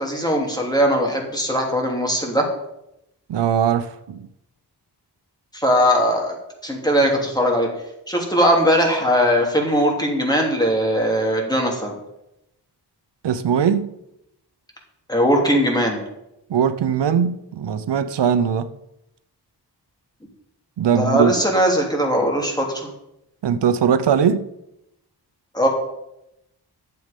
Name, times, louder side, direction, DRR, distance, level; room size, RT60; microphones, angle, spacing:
voice 1, 0.0-2.4 5.5-6.3 6.6-7.7 8.1-11.9 15.1-16.0 20.9-22.9 25.5-25.7, equal, 10° left, 3.0 m, -19 dB
voice 2, 3.3-4.3 13.2-13.9 16.5-18.7 20.8-21.4 23.4-24.5, right 7 dB, 90° right, 0.7 m, -20 dB
10.5 x 7.9 x 5.3 m
wide cardioid pair, 80°, 41 cm